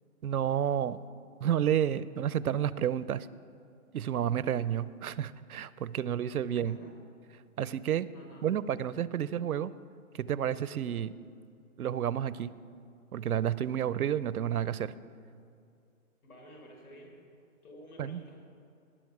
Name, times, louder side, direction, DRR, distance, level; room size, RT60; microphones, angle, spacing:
voice 1, 0.2-1.0 1.4-3.3 3.9-6.8 7.6-8.1 8.4-9.7 10.3-11.1 11.8-12.5 13.1-14.9 18.0-18.2, right 9 dB, 90° right, 18 dB, 0.6 m, -30 dB
voice 2, 6.5-6.9 8.1-8.5 16.2-17.1 17.6-18.4, equal, 85° left, 1 dB, 4.3 m, -51 dB
19.0 x 10.5 x 4.7 m, 2.4 s
hypercardioid pair, 170°, 43 cm